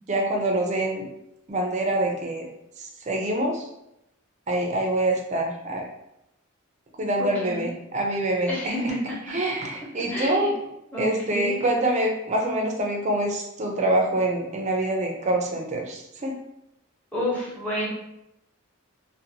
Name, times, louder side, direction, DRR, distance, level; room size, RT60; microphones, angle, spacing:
voice 1, 0.1-1.1 1.5-2.5 2.8-3.7 4.5-5.9 7.0-8.8 9.3-10.5 11.0-16.4, right 1 dB, 35° right, 1 dB, 0.4 m, -25 dB
voice 2, 7.2-7.7 8.5-9.4 10.1-10.5 10.9-11.7 17.1-17.9, equal, 10° left, -7 dB, 0.8 m, -30 dB
2.6 x 2.1 x 2.7 m, 0.84 s
head